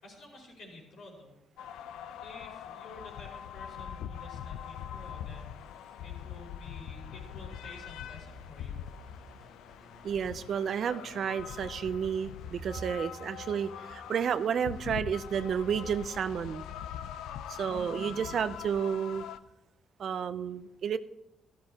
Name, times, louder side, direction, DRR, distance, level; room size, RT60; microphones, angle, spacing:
voice 1, 0.0-1.3 2.2-8.8 18.0-18.3, left 2 dB, 75° left, -1 dB, 4.7 m, -51 dB
sound 1, 1.6-19.4, left 9 dB, 90° left, 0.4 m, -43 dB
sound 2, 7.2-15.9, right 2 dB, ahead, 2.5 m, -56 dB
voice 2, 10.0-16.7 17.5-19.3 20.0-21.0, right 7 dB, 60° right, 14 dB, 0.5 m, -31 dB
13.5 x 12.0 x 2.9 m, 0.92 s
cardioid pair, 90°, 0 cm